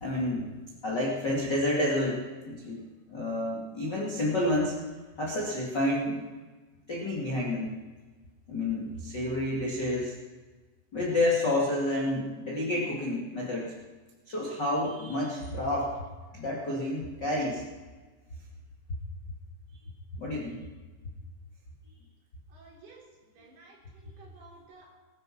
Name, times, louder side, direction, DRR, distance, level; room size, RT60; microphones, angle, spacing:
voice 1, 0.0-0.6 0.8-4.8 5.2-6.3 6.9-7.8 8.5-10.2 10.9-13.7 14.3-16.0 16.3-17.6 20.2-20.6, left 1 dB, 35° left, -5 dB, 1.8 m, -29 dB
voice 2, 22.5-25.0, right 3 dB, 55° right, -3 dB, 5.4 m, -54 dB
20.5 x 12.0 x 4.4 m, 1.3 s
omnidirectional pair, 5.7 m